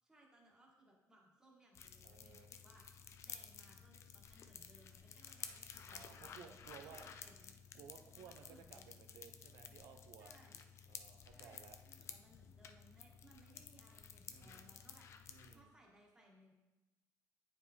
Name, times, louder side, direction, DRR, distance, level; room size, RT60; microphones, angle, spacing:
voice 1, 0.0-7.5 8.1-9.0 10.2-10.6 11.3-16.5, right 1 dB, 10° right, -3 dB, 1.4 m, -66 dB
sound 1, 1.7-15.6, left 7 dB, 45° left, 0.4 m, -54 dB
voice 2, 2.0-2.5 5.9-7.1 7.7-10.3 10.9-11.8 14.3-14.7 15.3-15.7, right 7 dB, 85° right, 6 dB, 0.6 m, -58 dB
8.9 x 4.5 x 2.8 m, 1.1 s
cardioid pair, 150°, 7 cm